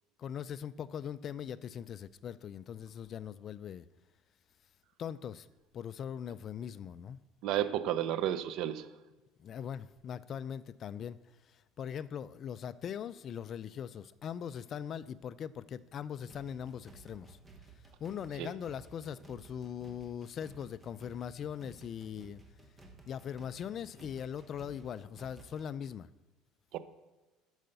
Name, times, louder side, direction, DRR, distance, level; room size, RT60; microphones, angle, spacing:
voice 1, 0.2-3.9 5.0-5.5 5.7-7.2 9.4-11.2 11.4-17.4 18.0-22.4 23.1-26.1, left 8 dB, 35° left, 0.3 m, -41 dB
voice 2, 7.4-8.9 18.4-18.5 26.7-26.8, right 11 dB, 60° right, 0.6 m, -32 dB
sound 1, 16.3-25.7, right 3 dB, 15° right, 1.0 m, -56 dB
9.0 x 5.6 x 6.7 m
cardioid pair, 140°, 0 cm